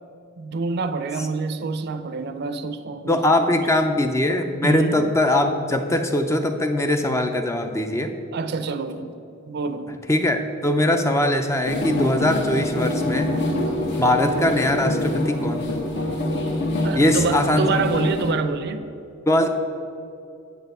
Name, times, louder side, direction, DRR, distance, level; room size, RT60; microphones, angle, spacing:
voice 1, 0.4-3.9 4.6-5.1 8.3-9.1 9.5-9.9 16.8-18.8, right 4 dB, 55° right, 10 dB, 0.4 m, -26 dB
voice 2, 3.1-8.1 10.1-13.3 14.0-15.7 16.9-17.8 19.3-19.5, left 1 dB, 15° left, 6 dB, 0.4 m, -21 dB
sound 1, 11.6-18.3, left 1 dB, 55° left, 0.9 m, -25 dB
7.9 x 4.2 x 6.7 m, 2.6 s
head